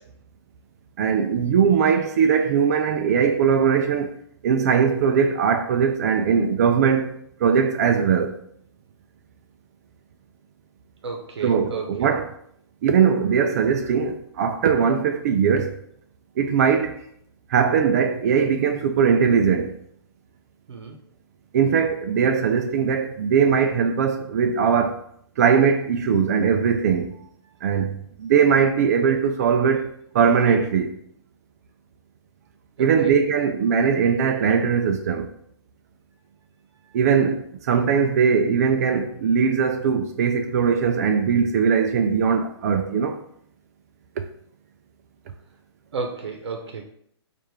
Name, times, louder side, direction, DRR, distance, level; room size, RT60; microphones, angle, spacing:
voice 1, 1.0-4.1 4.4-7.1 7.4-8.3 11.4-12.3 12.8-15.7 16.4-16.9 17.5-19.7 21.5-25.0 25.4-27.1 27.6-27.9 28.2-29.9 30.1-30.9 32.8-35.3 36.9-37.4 37.7-43.1, right 6 dB, 35° right, 0.3 m, -20 dB
voice 2, 11.0-12.1 20.7-21.0 32.8-33.1 45.9-46.8, right 4 dB, 75° right, 0.8 m, -33 dB
3.3 x 2.5 x 4.5 m
hypercardioid pair, 155°, 14 cm